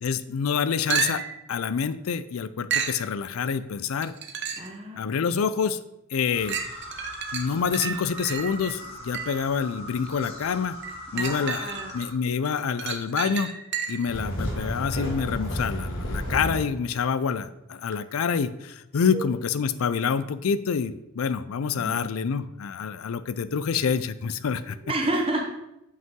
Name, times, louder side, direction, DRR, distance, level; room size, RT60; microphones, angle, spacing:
voice 1, 0.0-1.2 1.5-4.1 5.0-5.8 6.1-6.6 7.3-10.8 11.1-13.5 13.9-24.8, left 6 dB, 85° left, 14 dB, 0.4 m, -27 dB
sound 1, 0.9-1.5 2.7-3.0 4.0-4.8 5.3-5.4 6.5-9.5 10.8-12.1 12.4-14.1 17.9-18.0, right 6 dB, 55° right, 0.8 m, -31 dB
voice 2, 4.6-5.1 11.1-11.9 19.1-19.3 21.7-22.0 24.8-25.4, right 1 dB, 25° right, 1 dB, 1.0 m, -30 dB
sound 2, 6.3-12.1, left 1 dB, 30° left, 1.4 m, -41 dB
sound 3, 14.1-16.6, equal, 65° left, 2.0 m, -31 dB
7.8 x 5.5 x 3.7 m, 0.88 s
head